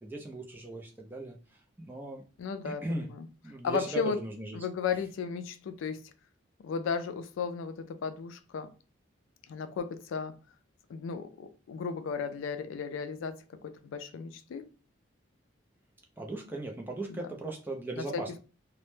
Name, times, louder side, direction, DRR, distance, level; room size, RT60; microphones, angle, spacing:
voice 1, 0.0-2.2 2.6-3.1 3.4-4.6 16.2-18.4, right 2 dB, 10° right, 0.3 m, -38 dB
voice 2, 2.4-3.3 3.6-4.2 4.5-6.0 6.6-8.7 9.5-10.3 10.9-14.6 17.1-17.3 18.0-18.4, left 6 dB, 80° left, 0.3 m, -35 dB
2.1 x 2.0 x 3.0 m
head